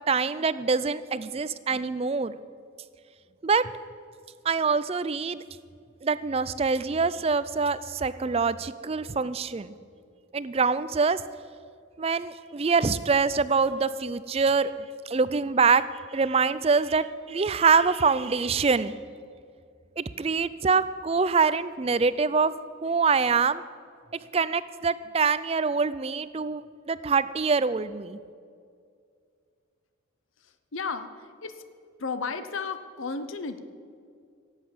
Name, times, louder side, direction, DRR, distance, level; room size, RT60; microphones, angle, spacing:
voice 1, 0.1-2.4 3.4-3.7 4.4-5.4 6.0-9.7 10.3-11.2 12.0-14.7 15.1-15.8 16.1-18.9 20.0-22.5 22.8-23.6 24.3-28.2, right 5 dB, 30° right, 15 dB, 0.4 m, -25 dB
voice 2, 30.4-31.6 32.0-33.6, left 4 dB, 80° left, 10 dB, 0.8 m, -34 dB
17.0 x 8.1 x 7.2 m, 2.3 s
head